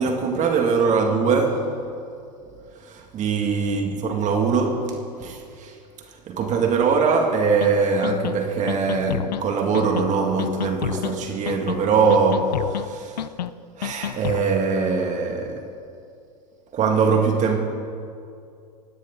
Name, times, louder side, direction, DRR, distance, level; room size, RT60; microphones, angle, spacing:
voice 1, 0.0-1.7 2.8-5.7 6.3-13.2 13.8-15.6 16.7-17.6, right 5 dB, 35° right, 3 dB, 2.1 m, -22 dB
sound 1, 7.6-7.7 8.0-8.4 8.7-9.4 9.7-10.1 10.4-11.1 11.5-11.8 12.1-12.9 13.2-13.5 13.8-14.5, left 10 dB, 85° left, 0.6 m, -29 dB
21.5 x 17.0 x 3.8 m, 2.5 s
hypercardioid pair, 100°, 21 cm